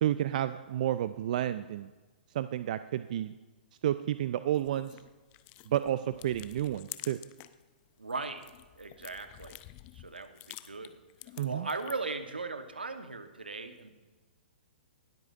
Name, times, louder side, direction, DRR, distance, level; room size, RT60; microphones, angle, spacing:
voice 1, 0.0-1.9 2.3-3.3 3.8-5.0 5.7-7.2 11.4-11.7, right 12 dB, 55° right, 13 dB, 0.4 m, -31 dB
sound 1, 4.5-7.6 8.0-12.2, left 17 dB, 35° left, 0.5 m, -49 dB
voice 2, 8.0-8.4 8.8-9.6 9.9-11.0 11.4-14.0, right 3 dB, 85° right, 9 dB, 1.0 m, -38 dB
19.5 x 8.1 x 2.5 m, 1.2 s
figure-of-eight pair, 120°, 5 cm